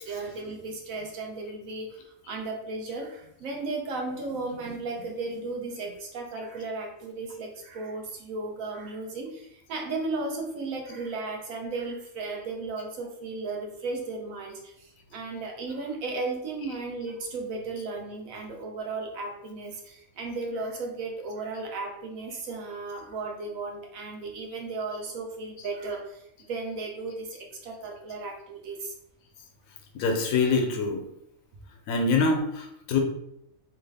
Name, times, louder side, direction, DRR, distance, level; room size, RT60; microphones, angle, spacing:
voice 1, 0.0-28.9, right 3 dB, 85° right, 1 dB, 1.1 m, -35 dB
voice 2, 29.9-31.0 31.9-33.0, left 4 dB, 90° left, 4 dB, 1.0 m, -25 dB
3.1 x 2.3 x 3.3 m, 0.77 s
omnidirectional pair, 1.4 m